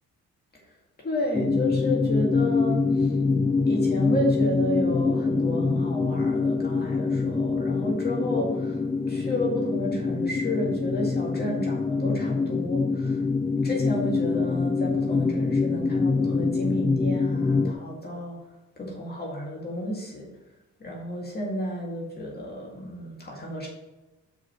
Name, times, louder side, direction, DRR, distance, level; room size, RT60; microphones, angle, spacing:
voice 1, 1.0-3.1 3.6-13.2 13.6-18.5 18.8-20.3 20.8-23.7, equal, 30° left, -2 dB, 2.0 m, -31 dB
sound 1, 1.3-17.7, left 4 dB, 15° left, 0.4 m, -25 dB
5.8 x 5.0 x 4.4 m, 1.1 s
cardioid pair, 90°, 30 cm